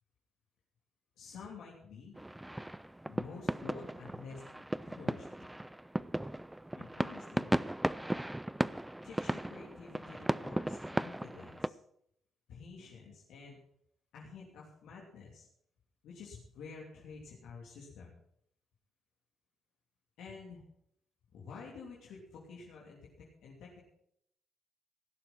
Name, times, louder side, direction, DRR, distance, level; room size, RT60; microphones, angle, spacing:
voice 1, 1.2-2.1 3.0-4.4 4.8-5.3 6.7-7.6 9.0-11.8 12.5-13.6 14.1-15.5 16.0-18.2 20.2-20.6 21.3-23.8, left 5 dB, 80° left, -3 dB, 3.1 m, -50 dB
sound 1, 2.2-11.7, right 1 dB, 10° right, 0.4 m, -36 dB
17.0 x 7.5 x 6.0 m, 0.72 s
cardioid pair, 90°, 0 cm